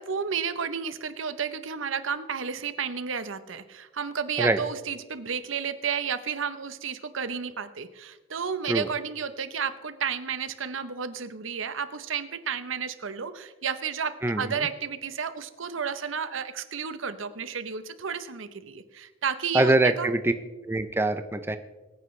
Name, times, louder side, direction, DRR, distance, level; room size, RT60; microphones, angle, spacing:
voice 1, 0.0-20.1, right 6 dB, 75° right, 12 dB, 0.8 m, -32 dB
voice 2, 14.2-14.5 19.5-20.3 20.7-21.6, right 2 dB, 10° right, 9 dB, 0.5 m, -23 dB
23.0 x 9.4 x 3.2 m, 1.2 s
head